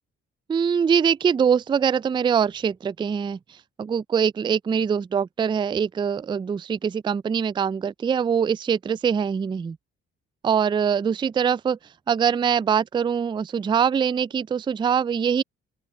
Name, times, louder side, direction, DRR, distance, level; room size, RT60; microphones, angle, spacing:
voice 1, 0.5-3.4 3.8-9.8 10.4-11.8 12.1-15.4, right 7 dB, 15° right, 0.3 m, -23 dB
open air
supercardioid pair, 60°, 29 cm